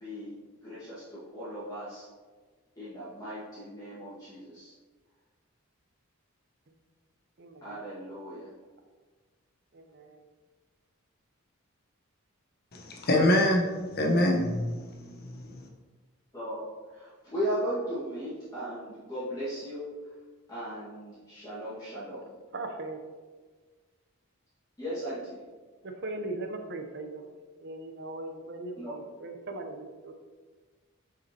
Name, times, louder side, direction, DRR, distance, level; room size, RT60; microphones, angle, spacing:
voice 1, 0.0-2.1 2.7-4.7 7.6-8.5 16.3-19.9 20.5-22.4 24.8-25.4 28.8-28.9, equal, 15° left, -12 dB, 1.7 m, -37 dB
voice 2, 12.7-13.6 14.0-15.6, left 1 dB, 45° left, 0 dB, 0.9 m, -25 dB
voice 3, 22.5-23.0 26.0-27.2 27.6-28.9 29.2-30.1, right 2 dB, 50° right, 5 dB, 0.7 m, -38 dB
7.3 x 5.0 x 2.8 m, 1.4 s
head